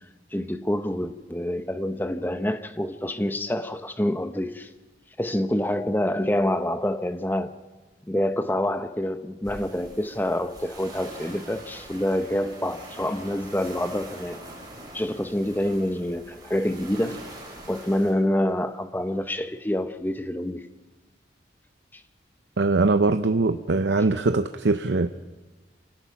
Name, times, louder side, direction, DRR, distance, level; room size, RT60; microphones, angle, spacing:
voice 1, 0.3-4.7 5.2-7.5 8.1-14.4 14.9-17.2 17.7-20.7 21.9-22.0, left 1 dB, 10° left, 0.8 m, -27 dB
sound 1, 9.4-18.1, right 1 dB, 20° right, 4.9 m, -43 dB
voice 2, 22.6-25.1, right 3 dB, 80° right, 0.7 m, -22 dB
26.5 x 17.5 x 5.9 m
head